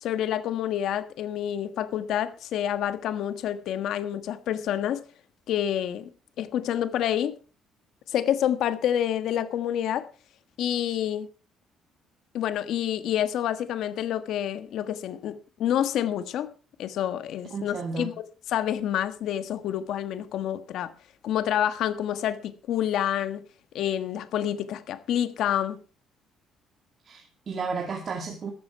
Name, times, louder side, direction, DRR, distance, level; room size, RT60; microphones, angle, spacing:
voice 1, 0.0-5.0 5.5-6.1 6.4-7.4 8.1-10.1 10.6-11.3 12.3-15.3 15.6-16.5 16.8-18.1 18.5-20.9 21.2-23.4 23.7-25.8, left 10 dB, 65° left, 1.4 m, -28 dB
voice 2, 17.5-18.1 27.0-28.5, right 4 dB, 35° right, 2.3 m, -33 dB
14.0 x 12.5 x 4.6 m
cardioid pair, 160°, 0 cm